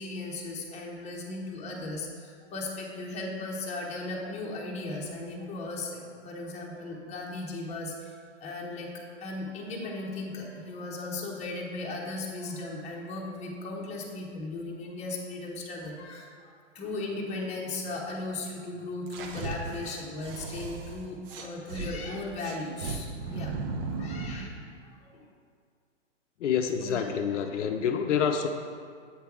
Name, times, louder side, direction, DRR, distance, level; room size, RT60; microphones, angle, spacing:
voice 1, 0.0-23.6 23.9-24.5 25.0-25.2 26.8-27.0 27.8-27.9, left 2 dB, 20° left, -2 dB, 0.9 m, -37 dB
sound 1, 19.1-21.9 22.4-24.5, right 4 dB, 50° right, 0.8 m, -36 dB
voice 2, 26.4-28.5, left 7 dB, 75° left, 5 dB, 0.6 m, -27 dB
7.9 x 3.4 x 4.7 m, 2.1 s
hypercardioid pair, 125°, 36 cm